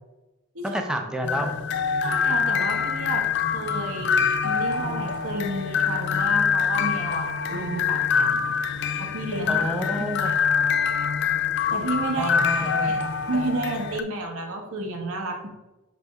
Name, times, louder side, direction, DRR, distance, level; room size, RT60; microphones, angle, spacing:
voice 1, 0.6-1.6 8.1-8.5 9.5-10.4 12.1-13.2, equal, 5° right, 4 dB, 0.6 m, -30 dB
sound 1, 1.2-14.0, left 6 dB, 55° left, 0.4 m, -25 dB
voice 2, 2.0-8.3 8.7-9.6 11.7-12.3 12.6-13.0 13.3-15.5, right 2 dB, 80° right, 2 dB, 1.2 m, -31 dB
6.7 x 4.2 x 3.5 m, 1.1 s
head